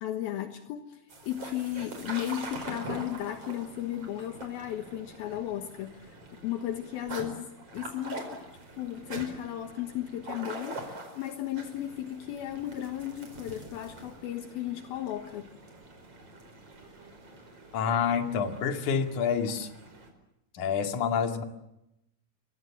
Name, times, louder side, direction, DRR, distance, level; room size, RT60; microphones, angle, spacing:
voice 1, 0.0-6.2 6.4-8.3 8.8-15.5, left 12 dB, 75° left, 7 dB, 3.1 m, -35 dB
sound 1, 1.1-20.1, right 2 dB, 40° right, 5.5 m, -44 dB
voice 2, 17.7-19.7 20.5-21.4, left 6 dB, 55° left, 6 dB, 3.4 m, -28 dB
29.0 x 24.0 x 7.3 m, 0.86 s
omnidirectional pair, 4.5 m